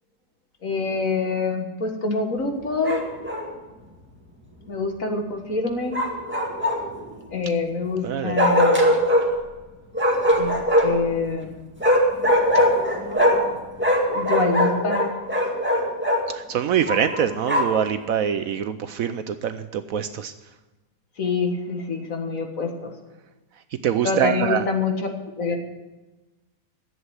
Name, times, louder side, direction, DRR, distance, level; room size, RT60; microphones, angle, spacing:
voice 1, 0.6-3.1 4.7-6.0 7.3-9.0 10.4-10.5 10.8-11.5 14.1-15.1 21.2-22.9 24.0-25.1 25.4-25.6, left 4 dB, 55° left, 4 dB, 1.9 m, -26 dB
Bark, 2.8-3.5 5.9-7.0 8.4-9.3 9.9-11.0 11.8-13.5 13.8-16.2 16.9-17.8, equal, 5° right, 2.0 m, -21 dB
voice 2, 8.0-8.4 16.3-20.3 23.8-24.6, right 9 dB, 65° right, 10 dB, 0.9 m, -24 dB
11.0 x 7.7 x 9.7 m, 1.2 s
omnidirectional pair, 1.7 m